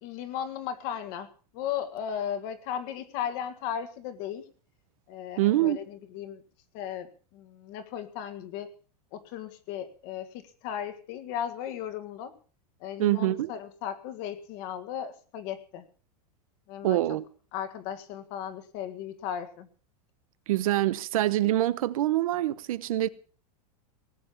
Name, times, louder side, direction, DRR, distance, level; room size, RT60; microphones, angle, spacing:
voice 1, 0.0-1.3 1.5-4.4 5.1-6.4 6.7-8.7 9.1-12.3 12.8-15.8 16.7-17.0 17.5-19.7, left 9 dB, 35° left, 1.8 m, -36 dB
voice 2, 5.4-5.8 13.0-13.5 16.8-17.2 20.5-23.1, right 14 dB, 60° right, 0.9 m, -25 dB
18.5 x 7.8 x 7.1 m
supercardioid pair, 175°, 20 cm